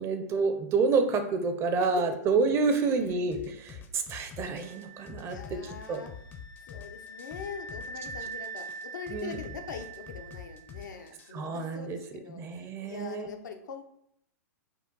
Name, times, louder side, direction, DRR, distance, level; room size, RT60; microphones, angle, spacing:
voice 1, 0.0-6.0 9.1-9.4 11.3-12.0 12.3-13.3, right 4 dB, 25° right, 7 dB, 0.5 m, -29 dB
sound 1, 3.3-11.3, left 7 dB, 20° left, 0.5 m, -45 dB
sound 2, 4.5-11.3, right 3 dB, 75° right, 0.9 m, -44 dB
voice 2, 5.2-6.1 6.7-13.8, left 6 dB, 85° left, 4 dB, 0.8 m, -43 dB
5.5 x 2.0 x 3.9 m, 0.73 s
hypercardioid pair, 130°, 10 cm